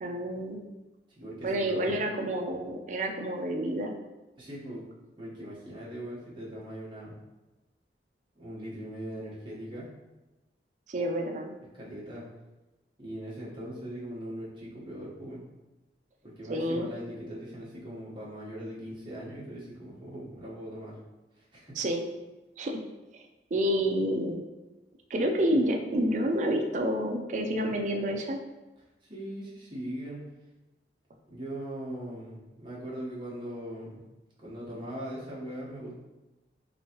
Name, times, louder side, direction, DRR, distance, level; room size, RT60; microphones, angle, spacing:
voice 1, 0.0-0.6 1.4-3.9 10.9-11.5 16.5-16.9 21.8-22.0 22.6-22.8 23.5-24.4 25.1-28.4, equal, 45° right, 2 dB, 0.3 m, -29 dB
voice 2, 1.2-2.0 4.4-4.8 5.2-7.2 8.4-9.9 11.7-12.2 13.0-15.4 16.2-20.9 21.4-21.8 29.1-30.2 31.3-34.0 34.4-35.9, right 1 dB, 25° right, -7 dB, 1.0 m, -40 dB
3.4 x 3.0 x 2.9 m, 1.1 s
head